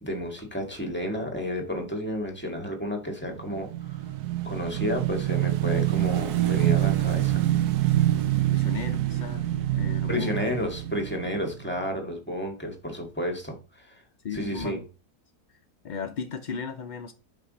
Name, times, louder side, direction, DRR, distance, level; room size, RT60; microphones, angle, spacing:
voice 1, 0.0-4.1 4.4-7.4 10.1-14.0 14.3-14.8, left 1 dB, 5° left, 1.7 m, -31 dB
Motorcycle / Engine, 3.3-11.8, right 14 dB, 80° right, 1.2 m, -26 dB
voice 2, 8.1-10.3 14.2-14.8 15.8-17.1, left 5 dB, 75° left, 0.4 m, -36 dB
5.8 x 5.8 x 4.1 m
omnidirectional pair, 1.7 m